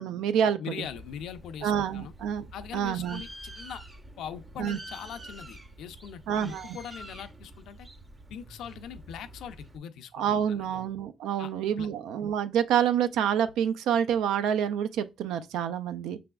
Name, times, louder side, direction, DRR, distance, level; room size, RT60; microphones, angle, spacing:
voice 1, 0.0-0.6 1.6-2.4 2.7-3.2 4.6-4.8 6.3-6.8 10.1-16.2, right 9 dB, 85° right, 0.4 m, -27 dB
voice 2, 0.6-2.1 2.5-3.8 4.2-7.9 8.3-10.7 11.4-11.9, left 8 dB, 80° left, 0.5 m, -41 dB
Bird, 0.8-9.8, right 1 dB, 20° right, 0.6 m, -47 dB
5.9 x 3.3 x 2.3 m
cardioid pair, 90°, 0 cm